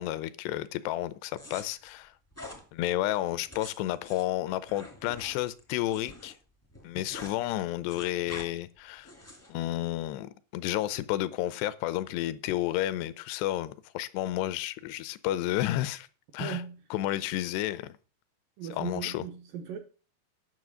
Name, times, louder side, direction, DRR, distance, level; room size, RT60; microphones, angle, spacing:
voice 1, 0.0-2.1 2.7-6.3 6.8-9.1 9.5-16.1 16.3-16.6 16.9-18.0 18.7-19.2, left 14 dB, 80° left, 2.7 m, -31 dB
sound 1, 1.3-1.6 2.3-2.6 3.3-6.3 6.6-7.4 7.6-8.5 9.0-9.5, left 1 dB, 10° left, 0.6 m, -46 dB
voice 2, 16.4-16.8 18.6-19.8, right 8 dB, 75° right, 2.1 m, -37 dB
11.0 x 6.2 x 6.2 m
omnidirectional pair, 4.9 m